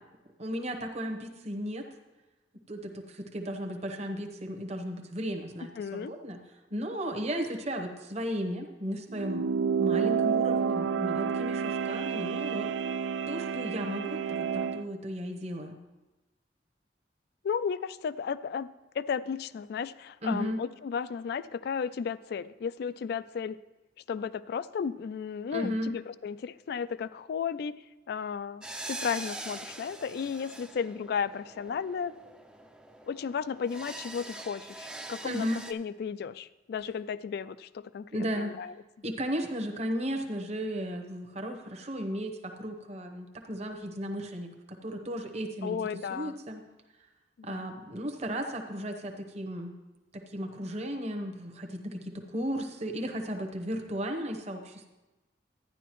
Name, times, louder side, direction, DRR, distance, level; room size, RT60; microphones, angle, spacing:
voice 1, 0.4-1.9 2.7-6.4 6.7-9.5 9.8-12.7 13.3-15.8 20.2-20.6 25.5-25.9 35.2-35.6 38.1-38.5 39.0-45.8 46.1-46.6 47.4-49.7 50.1-54.9, equal, 40° right, 3 dB, 0.9 m, -35 dB
voice 2, 5.8-6.1 17.4-18.7 18.9-23.6 24.1-27.8 28.1-32.2 33.1-38.7 45.6-46.4 47.4-47.7, left 6 dB, 60° left, 16 dB, 0.3 m, -34 dB
sound 1, 9.1-14.8, right 6 dB, 75° right, 0.3 m, -29 dB
sound 2, 28.6-35.7, right 2 dB, 5° right, 0.4 m, -43 dB
12.0 x 9.9 x 3.0 m, 1.1 s
head